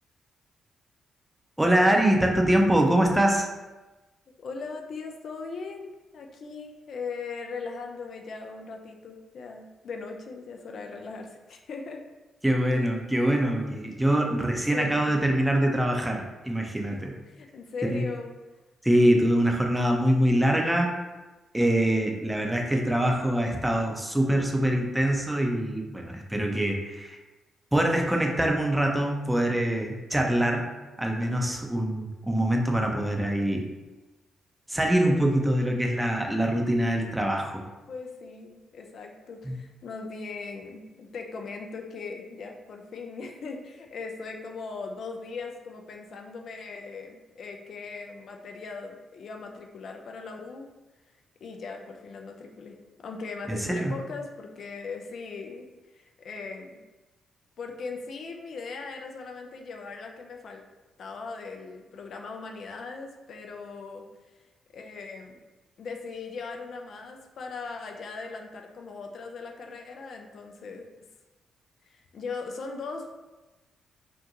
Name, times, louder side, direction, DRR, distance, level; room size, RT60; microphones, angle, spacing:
voice 1, 1.6-3.5 12.4-17.1 17.8-18.0 18.8-21.0 21.5-27.2 27.7-30.7 31.0-33.7 34.7-37.6 39.4-39.6 53.5-53.9, right 1 dB, 10° right, 1 dB, 0.5 m, -24 dB
voice 2, 4.4-12.0 14.7-15.2 17.3-18.3 37.9-50.7 51.4-52.7 53.0-55.7 56.0-56.8 57.6-60.6 61.0-64.0 64.7-65.4 65.8-70.8 71.9-73.1, left 4 dB, 60° left, 2 dB, 0.3 m, -39 dB
2.6 x 2.2 x 2.7 m, 1.1 s
hypercardioid pair, 40°, 0 cm